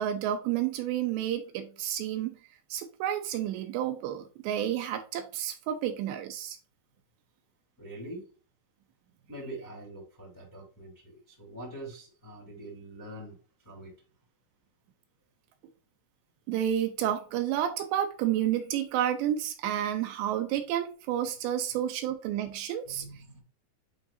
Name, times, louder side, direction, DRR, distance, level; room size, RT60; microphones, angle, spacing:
voice 1, 0.0-2.4 2.7-6.6 16.5-23.0, right 10 dB, 80° right, 6 dB, 2.6 m, -30 dB
voice 2, 7.8-8.3 9.3-13.4 13.6-13.9 22.9-23.4, right 1 dB, 5° left, -4 dB, 2.3 m, -44 dB
10.5 x 3.8 x 2.7 m, 0.38 s
omnidirectional pair, 5.7 m